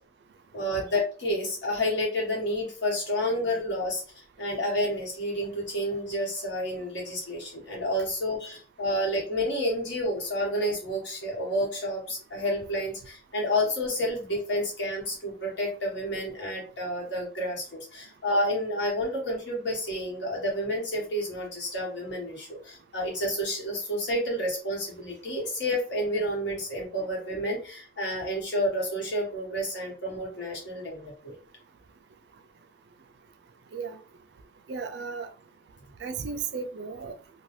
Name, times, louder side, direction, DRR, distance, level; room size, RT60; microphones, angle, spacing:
voice 1, 0.5-4.0 4.4-31.4, equal, 65° left, 1.3 m, -30 dB
voice 2, 34.7-35.3 36.0-37.1, right 5 dB, 60° right, 0.3 m, -34 dB
2.6 x 2.2 x 3.1 m
head